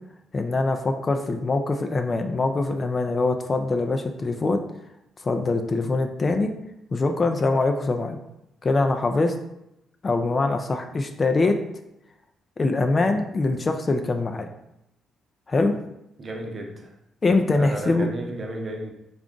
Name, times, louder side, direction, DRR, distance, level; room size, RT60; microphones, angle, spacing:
voice 1, 0.3-4.6 5.2-6.5 6.9-8.2 8.6-9.3 10.0-11.6 12.6-14.5 15.5-15.7 17.2-18.1, left 3 dB, 35° left, 6 dB, 0.3 m, -23 dB
voice 2, 16.2-16.9 17.5-18.9, right 1 dB, 40° right, 2 dB, 0.7 m, -33 dB
3.5 x 2.4 x 3.7 m, 0.85 s
cardioid pair, 90°, 0 cm